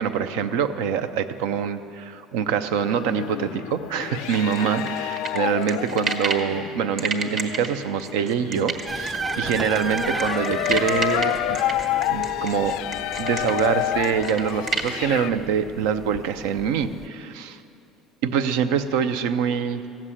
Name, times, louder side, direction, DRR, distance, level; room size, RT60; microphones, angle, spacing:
voice 1, 0.0-11.6 12.1-12.8 13.2-17.6 18.2-19.8, right 7 dB, 90° right, 11 dB, 0.7 m, -25 dB
sound 1, 2.8-15.3, left 14 dB, 75° left, 0.3 m, -29 dB
sound 2, 4.3-6.5 7.0-14.9, right 3 dB, 40° right, 1.3 m, -30 dB
sound 3, 8.9-17.1, right 3 dB, 15° right, 0.3 m, -35 dB
15.0 x 7.4 x 9.9 m, 2.7 s
cardioid pair, 135°, 0 cm